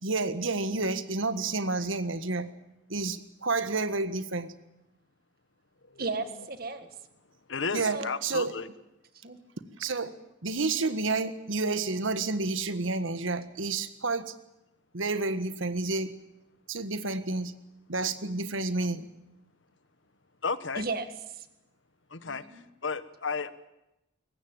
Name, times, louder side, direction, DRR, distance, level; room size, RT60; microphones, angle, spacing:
voice 1, 0.0-2.5 2.9-4.5 7.7-8.6 9.8-10.2 10.4-14.3 14.9-16.1 16.7-17.5 17.9-19.1, right 3 dB, 80° right, 12 dB, 1.6 m, -30 dB
voice 2, 6.0-6.9 7.8-8.1 9.1-9.4 20.8-21.5 22.2-22.6, right 3 dB, 50° right, 10 dB, 1.8 m, -35 dB
voice 3, 7.5-8.7 20.4-20.8 22.1-23.5, left 4 dB, 70° left, 14 dB, 1.3 m, -33 dB
23.0 x 19.5 x 8.9 m, 0.91 s
head